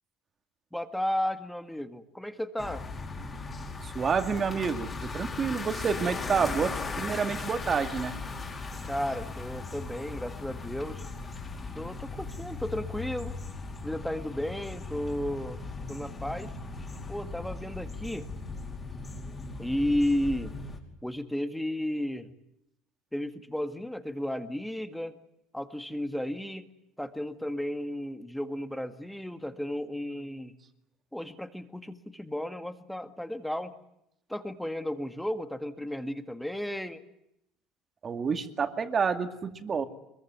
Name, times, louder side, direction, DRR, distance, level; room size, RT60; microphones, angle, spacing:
voice 1, 0.7-2.8 8.8-11.1 11.8-13.3 13.8-15.6 15.9-16.5 17.1-18.3 19.6-20.5 21.0-22.3 23.1-25.2 25.5-26.7 27.0-30.6 31.1-33.7 34.3-37.0, left 1 dB, ahead, 9 dB, 1.9 m, -33 dB
sound 1, 2.6-20.8, left 3 dB, 20° left, 5.1 m, -38 dB
voice 2, 3.8-8.2 38.0-39.8, right 6 dB, 25° right, 8 dB, 2.3 m, -29 dB
25.0 x 22.5 x 9.4 m, 0.80 s
cardioid pair, 145°, 0 cm